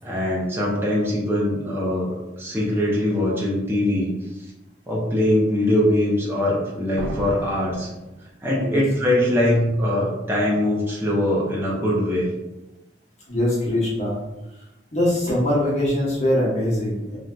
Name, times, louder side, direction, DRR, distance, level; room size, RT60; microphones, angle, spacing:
voice 1, 0.0-4.1 4.9-7.9 8.4-12.3, left 1 dB, 15° right, -4 dB, 0.6 m, -22 dB
sound 1, 7.0-8.8, right 2 dB, 90° right, 0.4 m, -35 dB
voice 2, 13.3-14.2 14.9-17.2, left 1 dB, 40° left, -7 dB, 1.0 m, -22 dB
3.3 x 2.6 x 2.3 m, 0.98 s
head